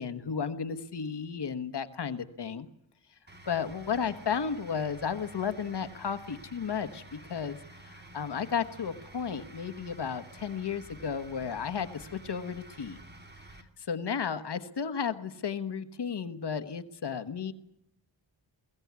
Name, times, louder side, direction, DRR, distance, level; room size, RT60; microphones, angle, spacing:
voice 1, 0.0-2.7 3.5-7.6 7.8-13.0 13.9-17.5, left 6 dB, 60° left, 10 dB, 1.4 m, -33 dB
sound 1, 3.3-13.6, right 2 dB, 20° right, 2.4 m, -50 dB
22.0 x 17.5 x 9.6 m, 0.80 s
wide cardioid pair, 170°, 45 cm